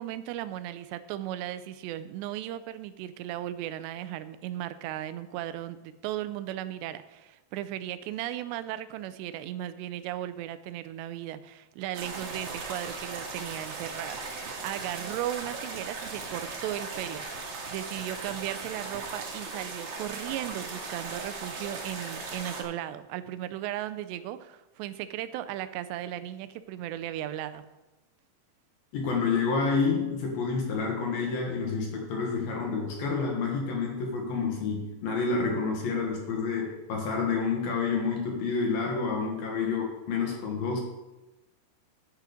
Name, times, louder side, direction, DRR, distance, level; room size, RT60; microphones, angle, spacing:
voice 1, 0.0-27.7, right 13 dB, 90° right, 12 dB, 2.8 m, -36 dB
sound 1, 11.9-22.6, right 4 dB, 65° right, 3.2 m, -38 dB
voice 2, 28.9-40.8, left 4 dB, 65° left, 0 dB, 3.0 m, -29 dB
10.5 x 7.5 x 5.1 m, 1.0 s
omnidirectional pair, 4.9 m